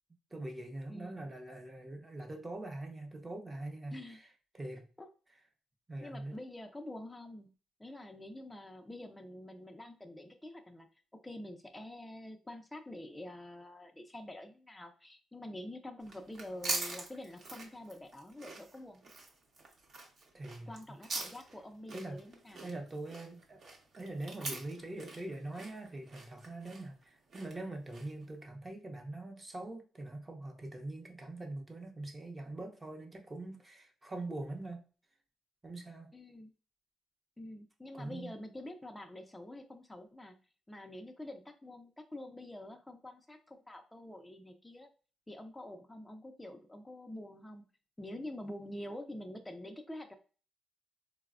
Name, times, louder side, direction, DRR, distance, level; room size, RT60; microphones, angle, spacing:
voice 1, 0.3-4.3 4.5-4.9 5.9-6.4 20.3-20.7 21.9-22.2 22.6-23.6 24.0-34.9 35.6-36.1 37.9-38.3, right 2 dB, 25° right, 0.7 m, -43 dB
voice 2, 0.9-1.3 3.9-4.3 5.0-5.1 6.0-7.5 7.8-10.9 11.2-19.1 20.7-22.7 36.1-36.5 37.4-40.4 40.7-44.9 45.3-47.6 48.0-50.1, left 1 dB, 10° left, 0.4 m, -47 dB
sound 1, 16.0-28.3, right 2 dB, 55° right, 0.9 m, -43 dB
3.9 x 2.1 x 2.4 m
cardioid pair, 90°, 0 cm